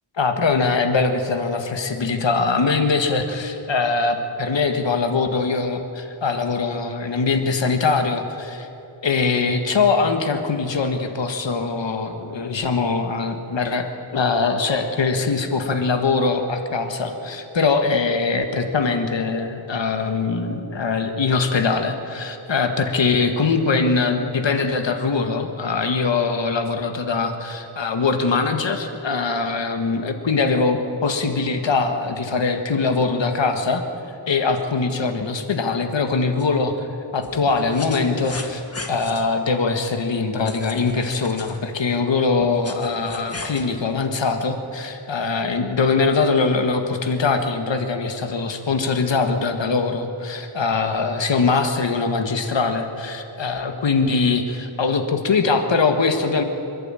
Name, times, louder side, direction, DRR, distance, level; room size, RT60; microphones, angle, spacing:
voice 1, 0.2-8.7 9.0-13.9 14.1-33.8 34.3-36.9 37.1-38.6 38.9-56.4, left 4 dB, 65° left, 6 dB, 1.8 m, -22 dB
sound 1, 36.4-36.5 37.2-39.2 40.5-41.6 42.4-43.6, left 3 dB, 30° left, 1.8 m, -36 dB
26.5 x 11.5 x 9.1 m, 2.9 s
wide cardioid pair, 105°, 47 cm